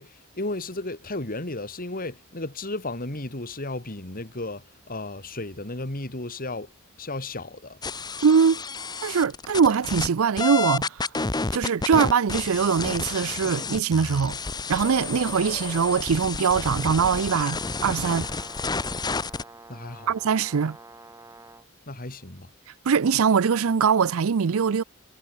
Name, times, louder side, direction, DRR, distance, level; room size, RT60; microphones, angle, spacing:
voice 1, 0.0-6.7 7.0-7.8 19.7-20.1 21.9-22.5, left 2 dB, 40° left, 3.0 m, -34 dB
sound 1, 7.8-10.1 10.4-19.4, left 4 dB, 20° left, 0.8 m, -30 dB
voice 2, 8.2-8.6 9.0-10.9 11.5-14.4 14.7-18.3 20.1-20.8 22.9-24.8, right 6 dB, 70° right, 0.5 m, -22 dB
Brass instrument, 16.4-21.7, right 2 dB, 15° right, 4.1 m, -46 dB
head